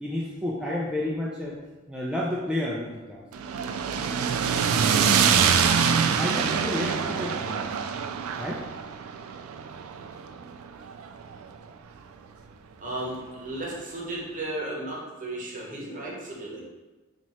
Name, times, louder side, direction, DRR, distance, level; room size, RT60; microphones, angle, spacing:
voice 1, 0.0-1.6 1.9-3.2 6.2-7.7 8.4-8.6, left 1 dB, 5° right, -6 dB, 0.3 m, -30 dB
sound 1, 3.3-11.6, right 6 dB, 85° right, 0.3 m, -25 dB
voice 2, 12.8-16.6, right 1 dB, 40° right, -4 dB, 0.9 m, -34 dB
3.0 x 2.8 x 4.2 m, 1.2 s
head